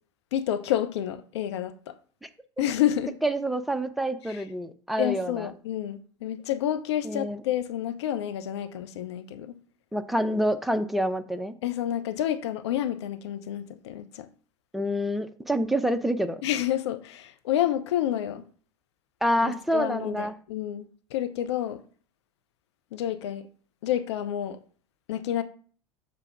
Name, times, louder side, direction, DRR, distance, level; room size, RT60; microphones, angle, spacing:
voice 1, 0.3-1.9 2.6-3.2 4.3-4.4 5.0-9.6 11.6-14.3 16.4-18.4 19.4-21.8 22.9-23.5 23.8-24.6 25.1-25.4, left 11 dB, 60° left, 0.7 m, -29 dB
voice 2, 3.2-5.5 7.0-7.4 9.9-11.5 14.7-16.4 19.2-20.3, equal, ahead, 0.6 m, -27 dB
6.9 x 3.4 x 5.9 m
figure-of-eight pair, 80°, 16 cm